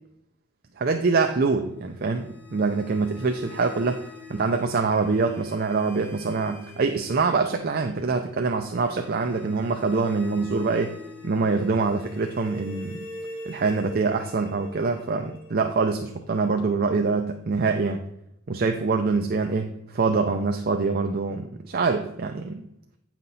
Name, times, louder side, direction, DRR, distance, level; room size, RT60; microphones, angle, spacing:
voice 1, 0.8-11.0 11.2-13.1 13.5-18.0 18.5-22.6, right 4 dB, 50° right, 5 dB, 0.6 m, -25 dB
sound 1, 1.8-16.7, left 1 dB, 10° right, 3.2 m, -44 dB
9.6 x 5.8 x 4.1 m, 0.79 s
head